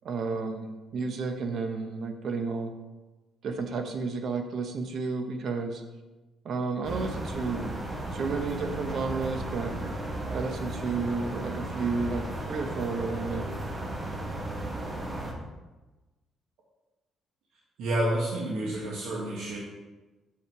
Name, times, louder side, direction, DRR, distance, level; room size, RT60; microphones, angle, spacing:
voice 1, 0.0-2.7 3.4-5.8 6.4-7.8 8.1-9.8 10.3-13.5, right 4 dB, 55° right, 6 dB, 0.9 m, -32 dB
sound 1, 6.8-15.3, right 1 dB, 25° right, 1.2 m, -35 dB
voice 2, 17.8-19.6, right 1 dB, 85° right, -3 dB, 1.5 m, -29 dB
7.1 x 5.7 x 4.7 m, 1.1 s
cardioid pair, 135°, 0 cm